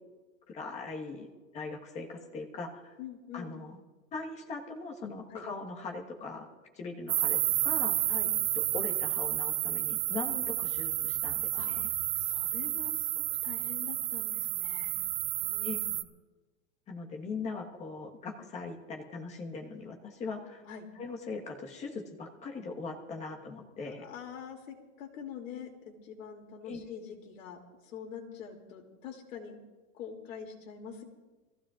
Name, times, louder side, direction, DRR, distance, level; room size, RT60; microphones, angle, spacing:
voice 1, 0.5-2.9 3.3-3.8 4.1-6.5 6.7-8.0 8.7-11.9 15.6-15.8 16.9-20.6 20.9-24.1 26.6-26.8, left 4 dB, 15° left, 1 dB, 1.4 m, -40 dB
voice 2, 3.0-3.5 5.3-5.4 8.1-8.3 11.5-11.7 12.1-14.9 15.4-16.0 20.6-20.9 23.8-29.6 29.9-31.0, left 7 dB, 65° left, 2 dB, 2.8 m, -45 dB
sound 1, 7.1-16.0, right 14 dB, 40° right, 0.5 m, -31 dB
24.5 x 15.5 x 2.5 m, 1.2 s
supercardioid pair, 165°, 43 cm